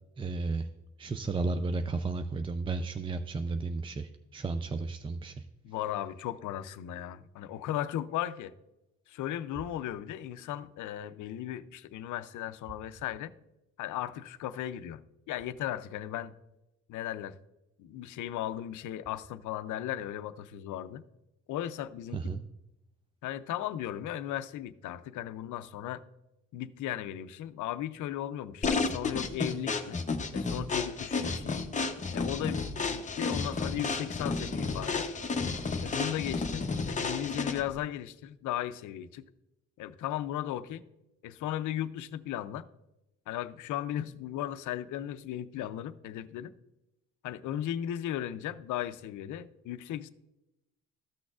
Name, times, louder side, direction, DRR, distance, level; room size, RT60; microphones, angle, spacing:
voice 1, 0.2-0.7 1.0-5.4 22.1-22.4, right 3 dB, 20° right, 0.4 m, -33 dB
voice 2, 5.6-8.5 9.1-13.3 13.8-15.0 15.3-16.3 16.9-17.4 17.8-21.0 21.5-22.4 23.2-26.0 26.5-30.0 30.3-31.6 32.1-35.1 35.8-39.3 39.8-40.8 41.2-42.7 43.3-46.5 47.2-50.1, left 12 dB, 80° left, 0.5 m, -36 dB
sound 1, 28.6-37.8, left 4 dB, 25° left, 0.7 m, -32 dB
13.5 x 6.1 x 2.4 m
cardioid pair, 90°, 30 cm